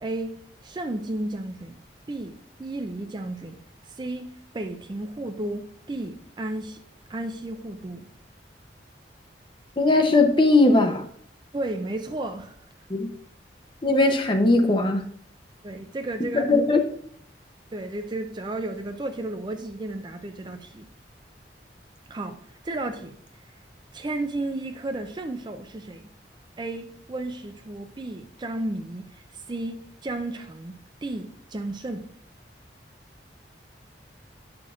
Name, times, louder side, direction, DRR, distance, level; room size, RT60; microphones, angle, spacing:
voice 1, 0.0-1.7 2.1-3.6 3.9-6.8 7.1-8.1 11.5-12.6 15.6-16.5 17.7-20.9 22.1-23.2 23.9-26.1 26.6-30.7 31.0-32.1, right 2 dB, 25° right, 0.4 m, -33 dB
voice 2, 9.8-11.0 12.9-13.1 13.8-15.0 16.3-16.8, left 2 dB, 25° left, 0.7 m, -19 dB
9.2 x 6.1 x 2.4 m
head